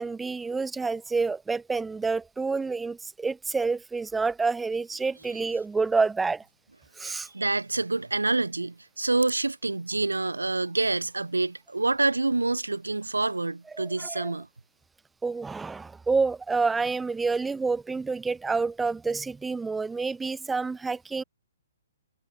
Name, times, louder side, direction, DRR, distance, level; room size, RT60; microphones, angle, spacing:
voice 1, 0.0-6.4 7.0-7.3 13.8-14.3 15.2-21.2, right 4 dB, 5° right, 2.7 m, -28 dB
voice 2, 7.1-14.5, right 3 dB, 80° right, 3.7 m, -27 dB
figure-of-eight pair, 125°, 0 cm